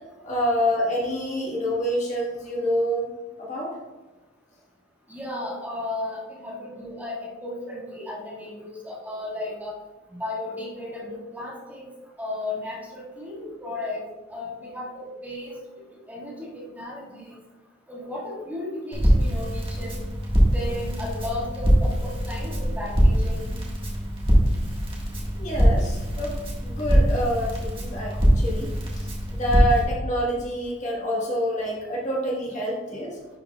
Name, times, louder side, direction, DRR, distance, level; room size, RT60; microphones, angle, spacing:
voice 1, 0.2-3.1 3.4-3.7 25.3-26.4 26.6-33.2, equal, 40° left, -5 dB, 1.5 m, -27 dB
voice 2, 5.1-9.7 10.1-11.9 12.2-14.0 14.3-15.5 16.1-17.3 17.9-20.1 20.5-23.6 32.9-33.0, left 2 dB, 10° right, -7 dB, 1.9 m, -34 dB
Crackle, 18.9-29.8, equal, 25° right, 1.5 m, -23 dB
11.0 x 5.2 x 2.3 m, 1.2 s
head